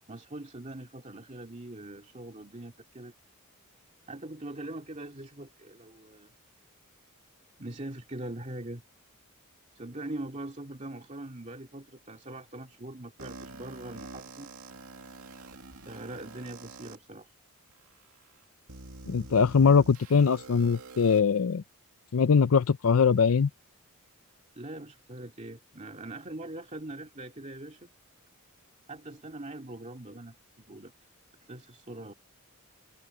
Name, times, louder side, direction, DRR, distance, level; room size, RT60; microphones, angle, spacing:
voice 1, 0.0-3.1 4.1-6.3 7.6-8.8 9.7-14.5 15.9-17.3 24.6-27.9 28.9-30.4 30.7-30.9 31.5-32.1, right 1 dB, 35° right, 2.4 m, -42 dB
sound 1, 13.2-17.0 17.7-17.8 18.7-21.2, right 3 dB, 80° right, 2.4 m, -46 dB
voice 2, 19.1-21.6 22.1-23.5, left 6 dB, 75° left, 0.5 m, -22 dB
head